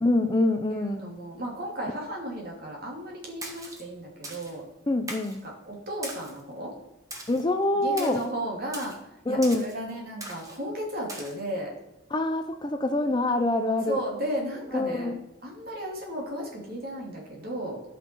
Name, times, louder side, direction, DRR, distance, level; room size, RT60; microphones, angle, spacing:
voice 1, 0.0-1.1 4.9-5.4 7.3-8.2 9.3-9.7 12.1-14.0 14.7-15.2, left 2 dB, 20° left, 7 dB, 0.5 m, -25 dB
voice 2, 0.7-4.6 5.7-6.7 7.8-8.9 9.3-11.7 13.9-15.1 15.4-17.8, equal, 45° right, -2 dB, 2.7 m, -34 dB
Splash splatter, 3.4-3.8 4.2-4.5 5.1-5.4 6.0-6.4 7.1-7.4 8.0-8.3 8.7-9.0 9.4-9.8 10.2-10.6 11.1-11.3, right 2 dB, 15° right, 1.3 m, -39 dB
12.0 x 5.8 x 4.6 m, 0.96 s
head